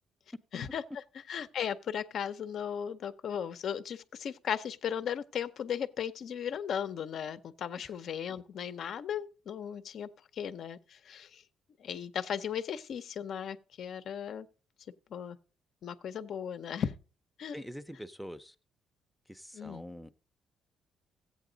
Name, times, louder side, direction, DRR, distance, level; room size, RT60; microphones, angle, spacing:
voice 1, 0.5-11.4 11.8-14.5 15.1-15.4 15.8-17.0 17.4-17.6 19.5-19.8, left 8 dB, 65° left, 0.6 m, -36 dB
voice 2, 17.5-18.5 19.3-20.1, equal, ahead, 0.6 m, -44 dB
14.0 x 8.5 x 3.9 m
cardioid pair, 90°, 0 cm